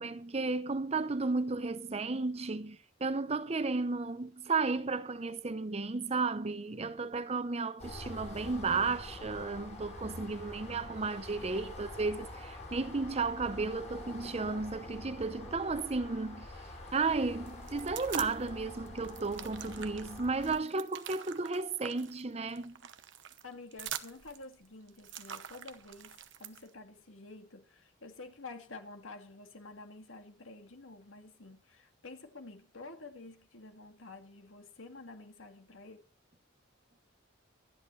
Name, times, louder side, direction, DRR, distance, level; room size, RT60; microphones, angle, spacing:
voice 1, 0.0-16.5 16.9-22.8, right 3 dB, 30° right, 0.6 m, -33 dB
sound 1, 7.8-20.6, left 1 dB, 35° left, 7.9 m, -46 dB
sound 2, 17.5-18.5 18.9-26.7, right 9 dB, 70° right, 0.9 m, -45 dB
voice 2, 23.4-36.0, left 3 dB, 85° left, 2.1 m, -50 dB
24.5 x 10.0 x 3.2 m
head